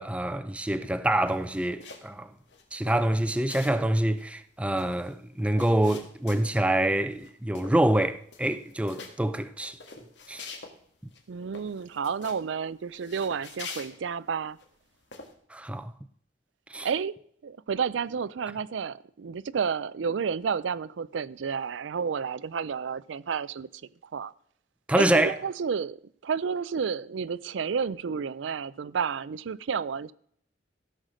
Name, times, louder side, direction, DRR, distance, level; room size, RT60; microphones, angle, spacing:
voice 1, 0.0-2.3 2.7-9.8 10.3-10.5 15.5-15.9 16.7-16.9 24.9-25.3, right 1 dB, 5° right, 0.5 m, -26 dB
sound 1, 1.2-2.2 2.5-3.9 4.2-4.3 4.5-6.7 7.1-7.3 7.5-8.0 8.3-9.1 9.6-10.8 11.1-11.2 11.5-12.4 12.9-14.6 15.1-15.3, left 4 dB, 75° left, 1.9 m, -45 dB
voice 2, 11.3-14.6 16.8-17.2 17.4-23.7 24.1-24.3 24.9-26.0 26.2-30.1, right 6 dB, 90° right, 0.4 m, -31 dB
15.5 x 6.5 x 6.3 m
head